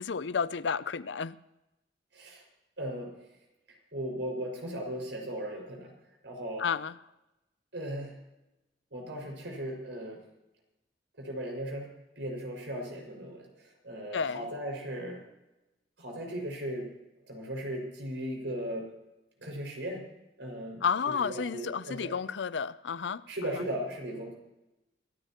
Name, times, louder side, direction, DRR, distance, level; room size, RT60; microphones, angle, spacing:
voice 1, 0.0-1.4 6.6-7.0 14.1-14.5 20.8-23.2 23.6-23.7, left 6 dB, 75° left, 0.5 m, -31 dB
voice 2, 2.1-2.4 2.8-3.1 3.7-5.9 6.2-6.6 7.7-8.2 8.9-10.2 11.2-11.9 12.2-15.2 16.0-16.9 17.3-18.9 19.4-20.0 20.4-20.8 21.2-22.2 23.3-24.3, equal, 90° right, 6.0 m, -37 dB
27.5 x 13.5 x 3.0 m
head